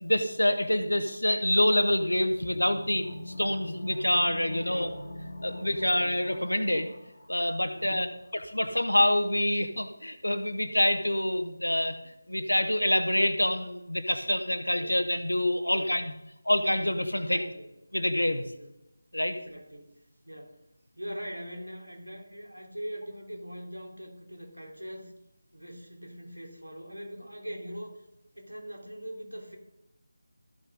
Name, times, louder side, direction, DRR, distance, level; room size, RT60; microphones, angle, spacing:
voice 1, 0.0-4.9 5.4-6.9 7.3-8.1 8.4-16.1 16.4-17.5 17.9-18.4 19.1-19.3, left 1 dB, 75° left, 10 dB, 1.2 m, -26 dB
sound 1, 2.2-8.1, left 1 dB, 55° left, 1.9 m, -43 dB
voice 2, 4.6-5.1 5.6-5.8 7.7-8.2 14.7-15.0 15.7-16.0 17.1-17.7 18.4-18.7 19.3-20.0 20.2-20.6 21.0-25.1 25.5-27.9 28.3-29.6, equal, 80° right, 1 dB, 3.0 m, -42 dB
14.0 x 6.7 x 3.7 m, 0.88 s
figure-of-eight pair, 160°, 0 cm